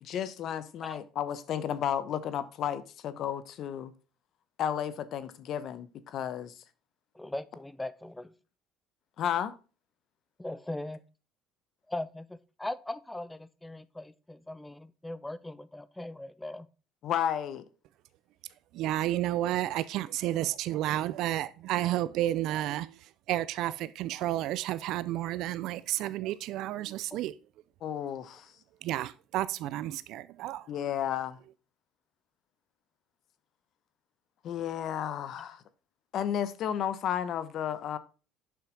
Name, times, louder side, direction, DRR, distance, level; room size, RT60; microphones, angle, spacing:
voice 1, 0.0-3.9 4.6-6.5 9.2-9.5 17.0-17.6 27.8-28.5 30.7-31.4 34.4-35.6 36.1-38.0, left 9 dB, 60° left, 1.0 m, -32 dB
voice 2, 7.1-8.3 10.4-11.0 11.9-16.7 27.1-27.2, left 1 dB, 10° left, 0.6 m, -39 dB
voice 3, 18.7-22.9 23.3-27.3 28.8-30.6, right 14 dB, 70° right, 0.4 m, -31 dB
7.4 x 5.8 x 5.2 m
supercardioid pair, 95°, 0 cm